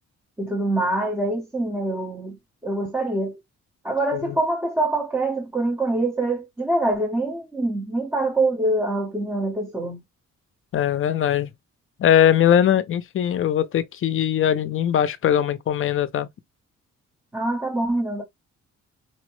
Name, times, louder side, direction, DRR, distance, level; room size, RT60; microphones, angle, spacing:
voice 1, 0.4-2.3 2.6-3.4 3.8-10.0 17.3-18.2, right 2 dB, 5° right, 0.8 m, -24 dB
voice 2, 10.7-11.5 12.0-16.3, left 10 dB, 45° left, 0.4 m, -20 dB
4.4 x 2.0 x 3.0 m
cardioid pair, 150°, 29 cm